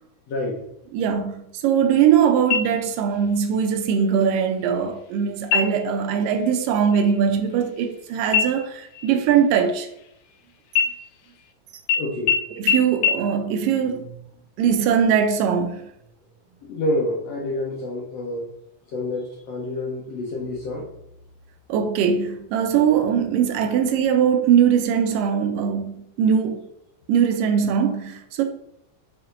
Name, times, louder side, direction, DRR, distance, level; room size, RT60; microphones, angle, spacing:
voice 1, 0.3-0.6 12.0-12.4 16.6-18.5 18.9-20.9, left 1 dB, 65° left, 1.8 m, -28 dB
voice 2, 0.9-9.9 12.6-14.1 14.6-15.8 21.7-26.6 27.1-28.4, right 7 dB, 85° right, 2.3 m, -21 dB
sound 1, 2.5-3.2 3.6-3.7 4.2-4.7 5.4-6.0 6.4-6.6 6.9-8.0 8.3-10.3 10.7-11.5 11.9-12.0 12.3-12.4 12.7-12.8 13.0-13.1, left 7 dB, 85° left, 2.4 m, -24 dB
5.8 x 5.0 x 3.8 m
omnidirectional pair, 3.9 m